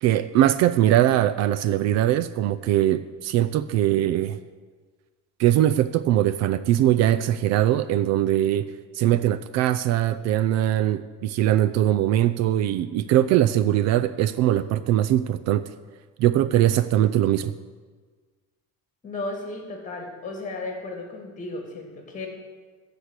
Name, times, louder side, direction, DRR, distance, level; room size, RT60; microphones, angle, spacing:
voice 1, 0.0-4.4 5.4-8.7 8.9-15.6 16.2-17.5, right 12 dB, 55° right, 13 dB, 0.4 m, -21 dB
voice 2, 19.0-22.3, left 2 dB, 25° left, 2 dB, 2.4 m, -34 dB
14.0 x 5.0 x 8.2 m, 1.4 s
cardioid pair, 155°, 31 cm